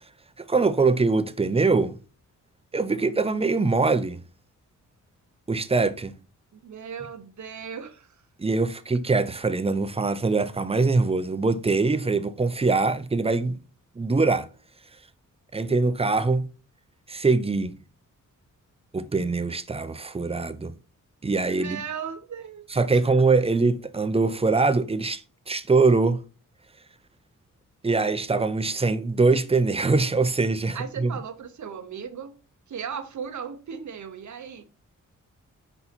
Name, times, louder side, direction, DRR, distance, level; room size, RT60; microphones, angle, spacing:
voice 1, 0.4-2.0 2.7-4.2 5.5-6.1 8.4-13.6 14.0-14.5 15.5-16.4 17.1-17.7 18.9-20.7 21.2-21.8 22.7-25.2 25.5-26.2 27.8-31.1, right 3 dB, 20° right, 0.5 m, -23 dB
voice 2, 2.9-3.2 6.6-8.2 21.4-22.7 22.9-23.0 30.7-32.4 32.7-34.6, right 7 dB, 65° right, 0.8 m, -37 dB
5.5 x 4.4 x 4.1 m
wide cardioid pair, 110°, 32 cm